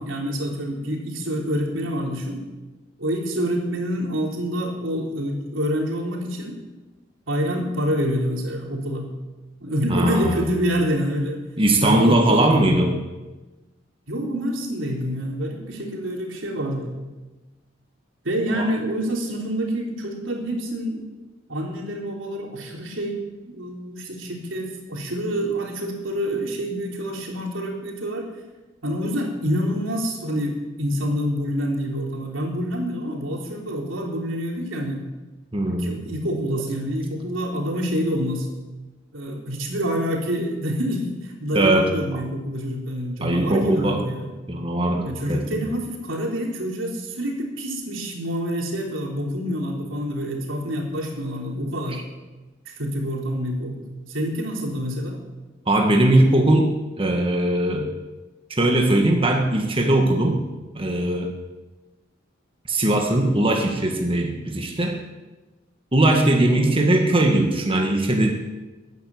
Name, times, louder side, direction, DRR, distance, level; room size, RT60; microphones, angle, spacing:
voice 1, 0.0-2.5 3.0-6.6 7.3-9.1 9.6-11.4 11.8-12.8 14.1-16.9 18.2-21.1 21.5-23.2 23.5-28.3 28.8-35.0 35.7-38.5 39.1-44.3 45.0-52.0 52.7-55.2, equal, 85° right, 0 dB, 3.7 m, -27 dB
voice 2, 9.9-10.4 11.6-12.9 18.5-18.6 35.5-36.0 41.5-41.9 43.2-44.1 44.5-45.6 55.7-56.7 57.0-57.9 58.6-60.4 60.7-61.3 62.7-65.0 65.9-68.3, right 1 dB, 30° right, 2 dB, 1.7 m, -20 dB
15.0 x 9.4 x 9.7 m, 1.2 s
head